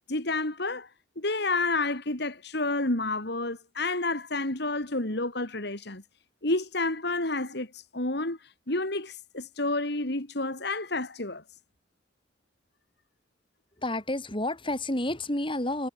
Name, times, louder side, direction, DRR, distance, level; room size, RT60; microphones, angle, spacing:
voice 1, 0.1-0.9 1.2-6.0 6.4-8.4 8.7-11.4, left 2 dB, 60° left, 3.3 m, -30 dB
voice 2, 13.8-15.9, left 1 dB, 25° left, 4.9 m, -30 dB
head